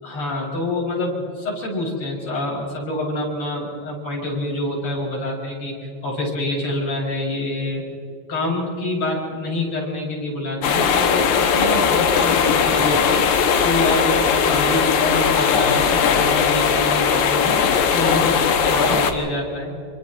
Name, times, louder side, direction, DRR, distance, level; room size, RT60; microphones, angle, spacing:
voice 1, 0.0-5.7 6.0-7.8 8.3-13.3 13.6-17.6 17.9-19.7, left 1 dB, 45° left, -3 dB, 6.3 m, -26 dB
sound 1, 10.6-19.1, left 6 dB, 80° left, 2.9 m, -18 dB
26.5 x 25.0 x 4.1 m, 2.6 s
omnidirectional pair, 3.3 m